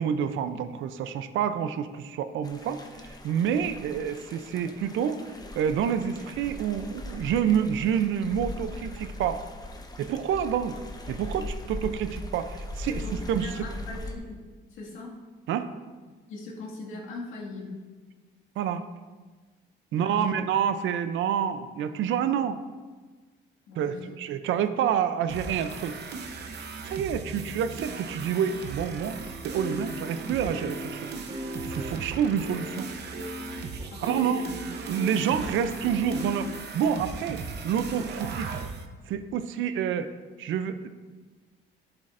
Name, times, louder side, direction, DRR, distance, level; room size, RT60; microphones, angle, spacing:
voice 1, 0.0-5.3 5.6-9.4 10.0-10.8 11.1-13.0 13.3-13.7 15.5-15.7 18.6-18.8 19.9-22.6 23.8-26.0 26.9-29.2 29.4-31.1 31.6-32.9 34.0-34.4 34.9-38.5 39.1-40.1 40.4-40.9, right 8 dB, 80° right, 11 dB, 0.5 m, -28 dB
sound 1, 2.4-14.2, left 1 dB, 20° left, 0.9 m, -40 dB
voice 2, 12.9-14.4 14.7-15.2 16.3-17.8 19.9-20.3 23.7-24.1 24.4-24.5 33.9-34.4, left 2 dB, 85° left, -4 dB, 2.0 m, -40 dB
sound 2, 25.3-38.8, right 4 dB, 55° right, 0.9 m, -38 dB
sound 3, 29.0-36.4, equal, 30° right, 1.5 m, -38 dB
11.5 x 7.5 x 2.6 m, 1.4 s
cardioid pair, 90°, 20 cm